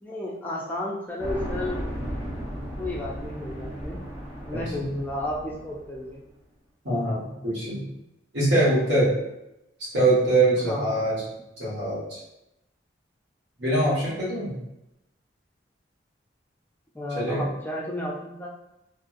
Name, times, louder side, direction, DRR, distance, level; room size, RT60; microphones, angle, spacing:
voice 1, 0.0-1.8 2.3-2.5 2.8-4.0 4.4-6.2 10.7-11.0 16.9-18.5, left 1 dB, 10° left, -4 dB, 0.3 m, -33 dB
sound 1, 1.2-6.2, equal, 15° right, 0.8 m, -35 dB
voice 2, 4.5-4.9 6.8-7.8 8.3-9.1 9.9-11.2 11.6-12.2 13.6-14.6 17.1-17.4, right 2 dB, 70° right, -7 dB, 1.3 m, -23 dB
2.9 x 2.5 x 2.4 m, 0.90 s
head